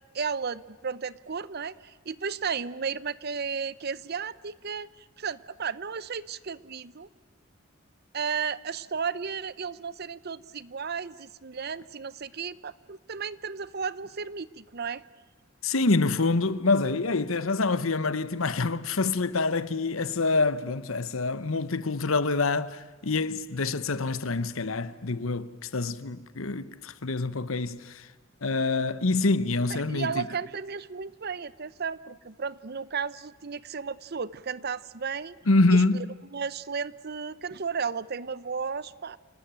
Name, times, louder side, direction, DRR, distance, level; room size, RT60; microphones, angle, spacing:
voice 1, 0.1-7.1 8.1-15.0 29.9-35.3 35.7-36.1 36.3-39.2, right 6 dB, 50° right, 0.8 m, -34 dB
voice 2, 15.6-28.1 28.4-30.2 35.5-36.0, left 3 dB, 80° left, 1.1 m, -26 dB
28.0 x 19.0 x 9.1 m
head